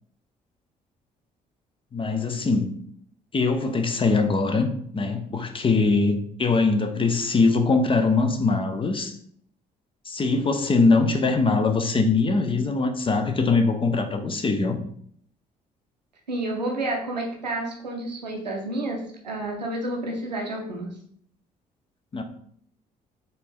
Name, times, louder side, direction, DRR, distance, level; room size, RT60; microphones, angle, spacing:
voice 1, 1.9-2.7 3.3-4.7 4.9-9.2 10.1-14.8 22.1-22.2, left 3 dB, 25° left, 6 dB, 0.6 m, -22 dB
voice 2, 16.3-20.9, right 1 dB, 85° right, 0 dB, 0.6 m, -30 dB
4.2 x 2.7 x 3.5 m, 0.65 s
figure-of-eight pair, 45°, 21 cm